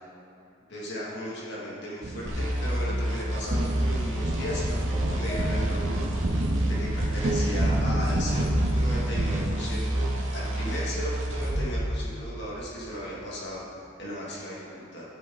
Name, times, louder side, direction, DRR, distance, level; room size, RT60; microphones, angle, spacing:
voice 1, 0.7-6.0 6.8-13.6 14.0-15.0, equal, 60° left, -6 dB, 2.5 m, -36 dB
sound 1, 2.0-3.1 3.5-10.3, right 1 dB, 40° right, 0.6 m, -30 dB
sound 2, 2.3-11.7, equal, 70° right, 2.0 m, -28 dB
sound 3, 4.1-6.2, left 3 dB, 5° left, 1.5 m, -42 dB
14.5 x 8.7 x 4.0 m, 2.8 s
head